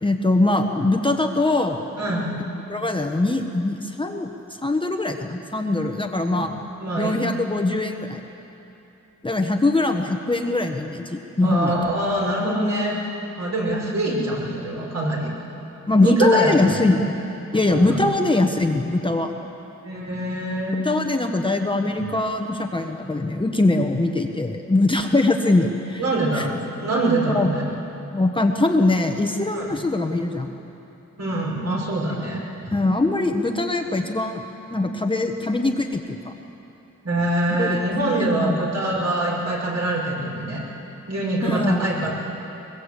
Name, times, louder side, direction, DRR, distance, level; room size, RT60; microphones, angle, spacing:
voice 1, 0.0-1.8 2.7-4.3 4.6-6.5 7.0-8.2 9.2-11.7 15.9-17.1 17.5-19.3 20.8-26.1 26.3-26.5 27.3-27.5 28.1-30.5 32.1-32.2 32.7-34.4 34.7-36.3 37.6-37.8 38.2-38.5 41.4-41.8, left 2 dB, 15° left, 3 dB, 1.1 m, -22 dB
voice 2, 2.0-2.3 6.3-6.4 6.8-7.2 11.4-13.0 13.4-15.3 16.0-16.9 17.7-18.0 19.8-20.8 26.0-26.5 26.8-27.6 29.5-29.7 31.2-32.4 37.0-40.6 41.1-42.1, right 1 dB, 60° right, -3 dB, 6.0 m, -24 dB
22.0 x 21.5 x 8.3 m, 2.9 s
wide cardioid pair, 135°, 30 cm